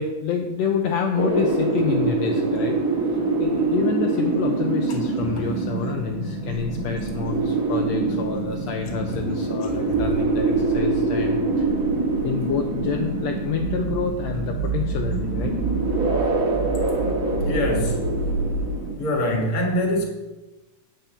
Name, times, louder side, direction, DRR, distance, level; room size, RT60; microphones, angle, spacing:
voice 1, 0.0-2.8 3.4-11.7 12.2-15.5, left 6 dB, 80° left, 3 dB, 1.6 m, -28 dB
sound 1, 1.1-18.9, right 3 dB, 35° right, 1.5 m, -25 dB
sound 2, 6.5-9.1 9.4-9.5 9.7-9.8 10.0-18.7, right 3 dB, 80° right, 2.0 m, -31 dB
voice 2, 17.4-18.0 19.0-20.0, left 1 dB, 35° left, 1 dB, 1.7 m, -24 dB
9.1 x 5.7 x 6.8 m, 1.1 s
omnidirectional pair, 3.7 m